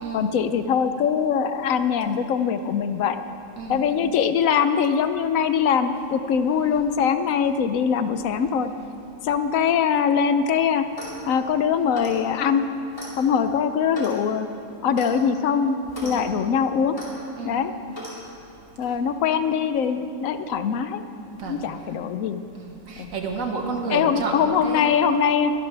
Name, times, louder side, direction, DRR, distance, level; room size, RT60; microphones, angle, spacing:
voice 1, 0.1-3.2 3.7-8.7 9.2-10.8 11.3-12.6 13.2-14.5 14.8-17.0 17.4-17.7 18.8-21.0 21.5-22.4 23.0-23.1 23.9-25.5, left 7 dB, 80° left, 10 dB, 1.1 m, -22 dB
voice 2, 3.6-3.9 16.0-16.4 17.4-17.7 18.8-19.0 21.4-21.9 22.6-24.9, right 4 dB, 85° right, 2 dB, 1.7 m, -31 dB
Clock, 10.8-11.2 11.9-12.2 12.9-13.1 13.9-14.2 14.9-15.1 15.9-16.2 16.9-17.1 17.9-18.2, left 1 dB, 25° left, 2.9 m, -37 dB
23.0 x 11.5 x 3.4 m, 2.7 s
omnidirectional pair, 1.4 m